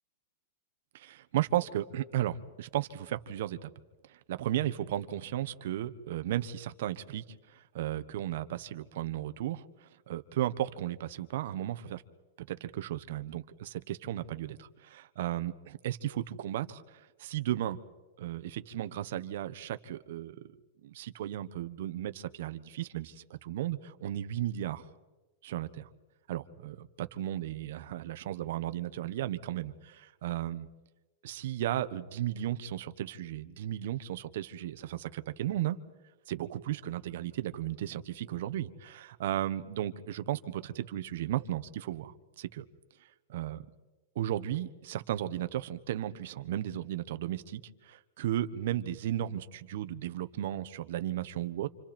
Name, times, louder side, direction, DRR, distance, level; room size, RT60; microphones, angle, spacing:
voice 1, 0.9-3.7 4.1-7.2 7.5-12.0 12.5-17.8 18.2-20.5 20.8-24.9 25.4-25.9 26.3-30.7 31.2-35.8 36.3-42.6 43.3-43.7 44.1-51.7, right 12 dB, 60° right, 11 dB, 1.2 m, -35 dB
29.5 x 27.0 x 4.5 m, 1.2 s
supercardioid pair, 170°, 0 cm